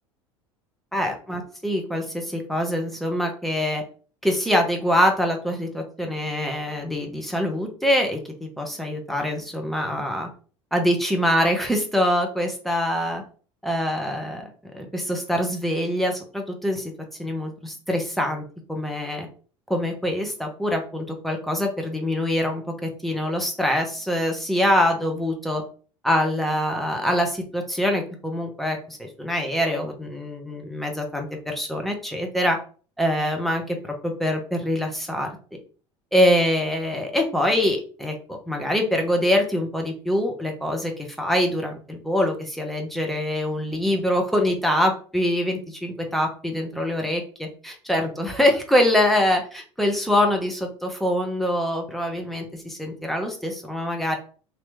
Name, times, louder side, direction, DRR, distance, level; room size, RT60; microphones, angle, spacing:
voice 1, 0.9-3.8 4.2-8.2 8.6-10.3 10.7-13.2 13.6-14.5 14.7-16.9 17.2-18.4 18.7-19.3 19.7-25.6 26.0-32.6 33.0-35.3 36.1-54.2, left 1 dB, ahead, 2 dB, 0.8 m, -24 dB
2.9 x 2.9 x 3.3 m, 0.40 s
figure-of-eight pair, 70°, 16 cm